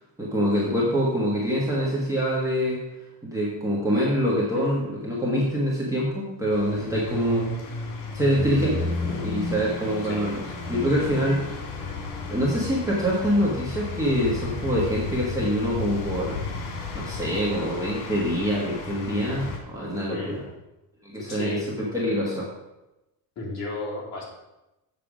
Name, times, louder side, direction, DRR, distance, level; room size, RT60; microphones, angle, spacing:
voice 1, 0.2-2.8 3.2-7.9 8.1-10.4 10.7-11.8 12.3-16.4 16.9-20.4 21.0-22.5, equal, 10° right, -5 dB, 1.3 m, -25 dB
sound 1, 6.5-19.6, left 3 dB, 80° left, 2.2 m, -33 dB
voice 2, 20.1-20.4 21.2-21.7 23.4-24.2, left 3 dB, 40° left, -4 dB, 2.7 m, -33 dB
7.4 x 6.5 x 4.9 m, 0.98 s
cardioid pair, 170°, 40 cm